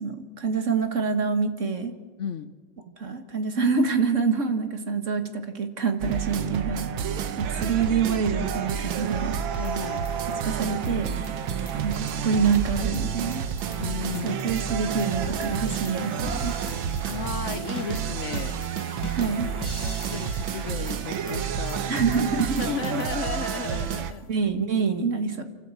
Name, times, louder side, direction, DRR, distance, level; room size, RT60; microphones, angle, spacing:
voice 1, 0.0-1.9 3.0-6.9 7.4-9.4 10.4-11.1 11.7-13.4 14.2-16.6 19.1-19.5 21.9-22.6 24.3-25.4, right 5 dB, 40° right, 8 dB, 1.7 m, -26 dB
voice 2, 2.2-2.5 9.5-10.0 13.8-14.5 17.0-18.6 19.8-21.9 22.6-24.2, left 7 dB, 65° left, 12 dB, 0.7 m, -34 dB
sound 1, 6.0-24.1, right 7 dB, 80° right, 1.8 m, -30 dB
sound 2, 9.6-24.2, left 3 dB, 30° left, 0.4 m, -44 dB
28.5 x 12.0 x 8.2 m, 1.5 s
omnidirectional pair, 2.1 m